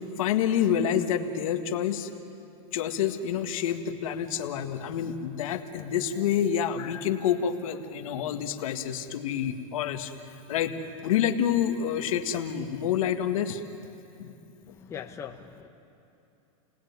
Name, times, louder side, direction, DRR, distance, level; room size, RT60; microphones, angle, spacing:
voice 1, 0.2-2.1 2.7-10.1 10.5-10.7 11.0-13.6 14.2-14.3, left 9 dB, 70° left, 6 dB, 1.8 m, -28 dB
voice 2, 14.9-15.7, left 8 dB, 15° left, 2 dB, 0.9 m, -40 dB
30.0 x 19.0 x 9.5 m, 2.8 s
supercardioid pair, 155°, 18 cm